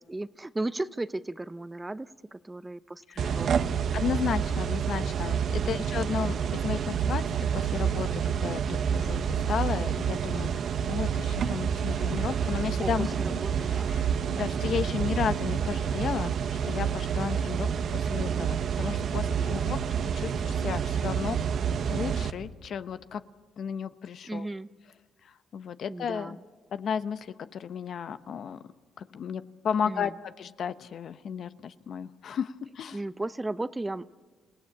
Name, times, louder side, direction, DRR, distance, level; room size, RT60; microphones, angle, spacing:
voice 1, 0.0-3.8 12.8-14.0 19.4-19.7 24.2-24.7 25.9-26.4 29.9-30.2 32.9-34.1, right 2 dB, 15° right, 14 dB, 0.6 m, -36 dB
voice 2, 3.1-3.4 3.9-7.2 7.5-13.4 13.7-14.0 14.3-16.3 16.6-19.8 20.1-21.5 21.9-23.2 23.6-24.5 25.2-26.4 26.7-28.6 29.0-33.0, left 7 dB, 60° left, 12 dB, 0.9 m, -33 dB
sound 1, 3.2-22.3, right 7 dB, 65° right, 1.0 m, -28 dB
28.5 x 17.0 x 8.6 m, 1.4 s
cardioid pair, 90°, 0 cm